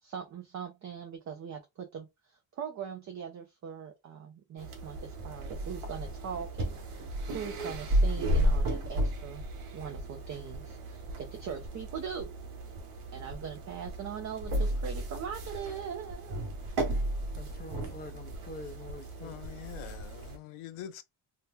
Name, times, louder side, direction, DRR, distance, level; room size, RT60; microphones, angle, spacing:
voice 1, 0.0-9.4 9.7-12.3 13.1-16.4, right 7 dB, 35° right, 0.4 m, -41 dB
sound 1, 4.6-20.4, right 1 dB, 80° right, 1.1 m, -34 dB
voice 2, 17.3-19.4, left 2 dB, 20° left, 0.5 m, -46 dB
voice 3, 19.2-21.0, left 11 dB, 80° left, 0.7 m, -44 dB
2.8 x 2.1 x 3.5 m
wide cardioid pair, 180°, 49 cm